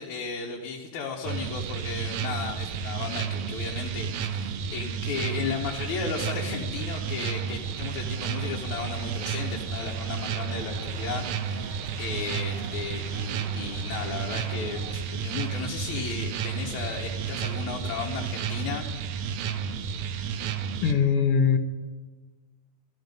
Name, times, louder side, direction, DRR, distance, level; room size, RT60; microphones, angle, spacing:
voice 1, 0.0-18.9, left 5 dB, 80° left, -1 dB, 2.5 m, -35 dB
sound 1, 1.2-20.9, right 7 dB, 85° right, 2.1 m, -32 dB
sound 2, 6.0-14.9, right 4 dB, 50° right, 2.1 m, -48 dB
voice 2, 20.8-21.6, left 6 dB, 65° left, 6 dB, 1.6 m, -21 dB
14.0 x 13.5 x 5.3 m, 1.3 s
omnidirectional pair, 3.3 m